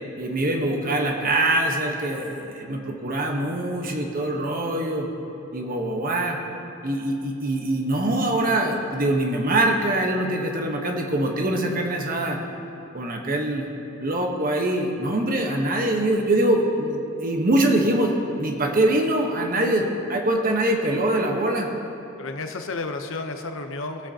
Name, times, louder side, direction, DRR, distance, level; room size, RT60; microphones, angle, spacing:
voice 1, 0.2-5.1 5.5-6.4 6.8-12.4 12.9-13.7 14.0-21.7, right 1 dB, 40° right, 2 dB, 1.2 m, -23 dB
voice 2, 22.2-24.1, left 3 dB, 65° left, 6 dB, 0.8 m, -32 dB
20.0 x 7.8 x 2.9 m, 3.0 s
head